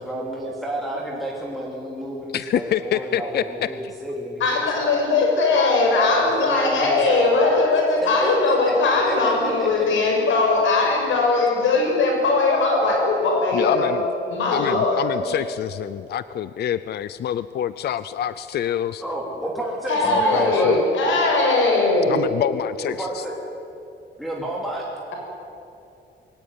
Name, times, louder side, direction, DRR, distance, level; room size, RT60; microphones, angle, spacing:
voice 1, 0.0-4.6 6.0-7.3 8.0-9.7 19.0-20.8 23.0-23.3 24.2-24.8, right 1 dB, ahead, -4 dB, 2.9 m, -30 dB
voice 2, 2.3-3.7 5.6-5.7 13.5-14.0 14.5-19.0 20.0-20.8 22.1-23.2, left 10 dB, 55° left, 15 dB, 0.5 m, -27 dB
voice 3, 4.4-13.9 14.3-15.4 19.9-22.2, left 3 dB, 80° left, 1 dB, 6.5 m, -20 dB
22.5 x 17.5 x 9.6 m, 2.7 s
wide cardioid pair, 165°, 20 cm